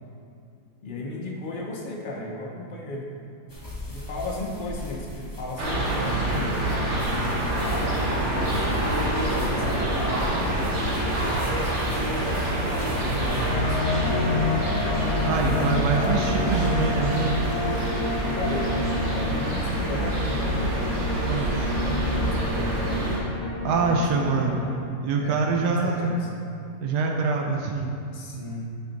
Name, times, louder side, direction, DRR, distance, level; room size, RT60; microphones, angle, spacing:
voice 1, 0.8-3.1 3.9-8.9 9.4-11.5 12.6-14.4 15.0-16.7 18.1-18.7 19.1-20.8 22.1-23.0 23.7-24.6 25.2-26.3 28.1-28.7, left 2 dB, 75° left, -1 dB, 0.4 m, -35 dB
sound 1, 3.5-21.1, left 2 dB, 15° left, 1.0 m, -40 dB
sound 2, 5.6-23.2, right 1 dB, 50° right, 1.2 m, -26 dB
sound 3, 13.5-24.7, left 3 dB, 60° left, 1.1 m, -29 dB
voice 2, 15.2-17.3 21.3-21.7 23.6-24.6 25.0-26.1 26.8-27.9, right 4 dB, 85° right, 1 dB, 1.1 m, -25 dB
8.3 x 4.3 x 3.9 m, 2.6 s
omnidirectional pair, 1.7 m